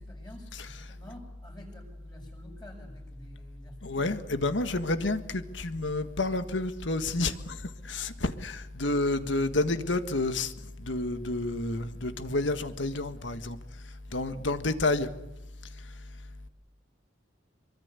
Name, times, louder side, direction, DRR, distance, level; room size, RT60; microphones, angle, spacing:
voice 1, 0.0-4.2, equal, 20° left, 6.4 m, -49 dB
voice 2, 0.5-0.9 3.8-7.6 7.8-10.5 10.8-13.6 14.1-15.1, left 2 dB, 75° left, 1.7 m, -29 dB
24.0 x 23.5 x 8.3 m
head